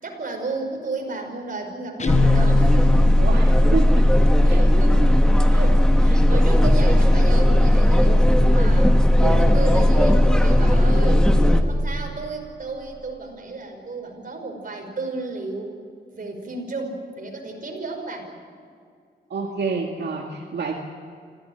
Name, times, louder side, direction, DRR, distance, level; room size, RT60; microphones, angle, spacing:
voice 1, 0.0-3.1 4.4-15.7 16.1-18.3, right 3 dB, 50° right, 2 dB, 5.5 m, -33 dB
Guitar, 2.0-3.7, left 7 dB, 40° left, 0.6 m, -25 dB
sound 1, 2.1-11.6, left 1 dB, 5° left, 1.8 m, -16 dB
voice 2, 3.2-4.1 4.5-4.6 6.1-6.2 19.3-20.7, right 4 dB, 80° right, 0 dB, 2.1 m, -28 dB
26.0 x 16.5 x 9.0 m, 2.3 s
wide cardioid pair, 110°, 17 cm